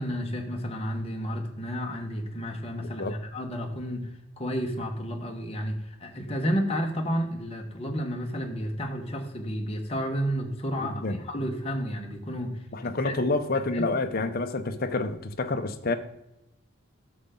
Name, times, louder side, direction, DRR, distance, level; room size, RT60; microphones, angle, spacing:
voice 1, 0.0-4.1 4.4-13.1 13.7-13.9, equal, 30° left, 1.3 m, -31 dB
voice 2, 10.8-11.2 12.7-15.9, left 3 dB, 45° left, 0.8 m, -28 dB
11.0 x 6.8 x 3.8 m
head